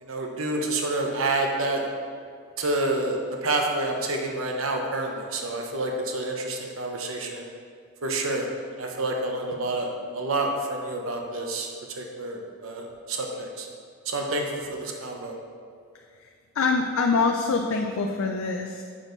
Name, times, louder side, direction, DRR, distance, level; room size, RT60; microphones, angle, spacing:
voice 1, 0.0-1.8 2.6-7.4 8.0-8.5 8.8-13.7 14.1-15.4, right 2 dB, 80° right, 2 dB, 0.8 m, -28 dB
voice 2, 15.9-16.3 16.5-18.8, left 4 dB, 80° left, 2 dB, 0.5 m, -25 dB
7.5 x 6.2 x 3.9 m, 2.2 s
head